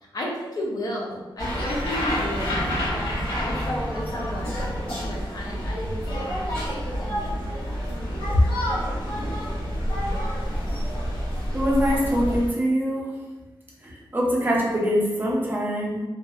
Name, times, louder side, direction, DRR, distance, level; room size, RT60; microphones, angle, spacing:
voice 1, 0.1-7.3 7.9-8.4, left 1 dB, 45° left, -3 dB, 0.5 m, -31 dB
sound 1, 1.4-12.5, equal, 80° left, 1.1 m, -28 dB
voice 2, 11.5-13.1 13.8-16.0, equal, 20° right, -4 dB, 0.5 m, -24 dB
2.6 x 2.1 x 2.3 m, 1.2 s
wide cardioid pair, 135°, 9 cm